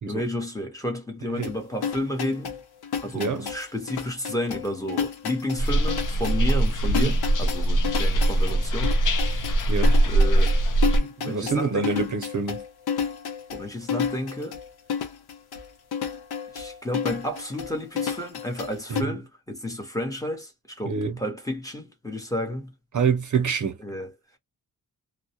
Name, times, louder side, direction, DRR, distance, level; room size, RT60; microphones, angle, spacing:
voice 1, 0.1-2.6 3.0-9.5 9.8-10.6 11.2-12.1 13.5-14.6 16.5-22.7 23.8-24.4, left 1 dB, 10° left, 0.8 m, -32 dB
sound 1, 1.4-19.0, left 7 dB, 90° left, 0.7 m, -31 dB
voice 2, 3.1-3.5 6.9-7.1 9.7-10.0 11.2-12.6 18.9-19.1 20.9-21.1 22.9-23.8, right 5 dB, 55° right, 0.6 m, -26 dB
sound 2, 5.6-11.0, right 1 dB, 55° left, 0.5 m, -21 dB
2.2 x 2.1 x 2.7 m
wide cardioid pair, 135°, 37 cm